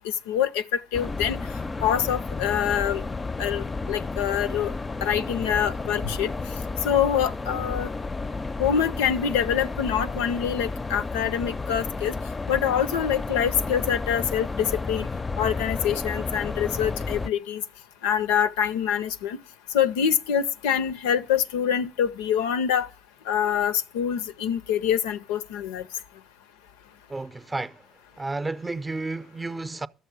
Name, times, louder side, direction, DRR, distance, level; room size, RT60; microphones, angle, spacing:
voice 1, 0.0-1.4 1.8-3.0 3.4-4.7 5.0-6.3 6.8-7.9 8.6-12.1 12.5-15.1 15.4-17.6 18.0-19.4 19.7-22.9 23.3-25.9, left 9 dB, 90° left, 0.5 m, -25 dB
sound 1, 0.9-17.3, left 3 dB, 25° left, 0.4 m, -32 dB
voice 2, 27.1-27.9 28.2-29.9, right 3 dB, 20° right, 0.5 m, -32 dB
12.5 x 6.7 x 6.1 m
supercardioid pair, 65°, 0 cm